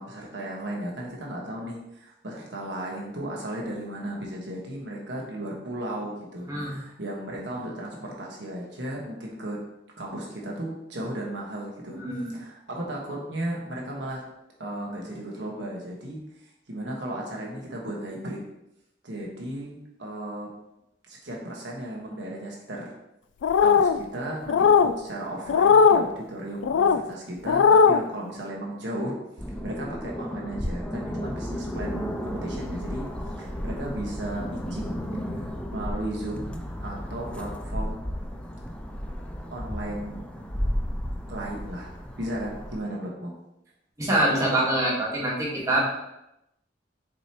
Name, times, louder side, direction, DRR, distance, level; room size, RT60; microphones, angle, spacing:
voice 1, 0.0-9.6 10.0-14.2 14.6-16.2 16.7-18.4 19.0-20.5 21.1-22.9 23.6-29.1 29.6-33.1 33.4-35.1 35.4-38.0 39.5-40.4 41.3-43.3, right 1 dB, 65° right, -2 dB, 1.4 m, -35 dB
voice 2, 11.9-12.3 44.0-45.8, right 1 dB, 20° right, -5 dB, 1.6 m, -25 dB
sound 1, 23.4-24.0 24.5-24.9 25.5-26.0 26.6-27.0 27.5-28.0, left 6 dB, 90° left, 0.3 m, -18 dB
sound 2, 29.4-42.8, equal, 5° left, 0.4 m, -33 dB
6.8 x 4.6 x 3.0 m, 0.86 s
head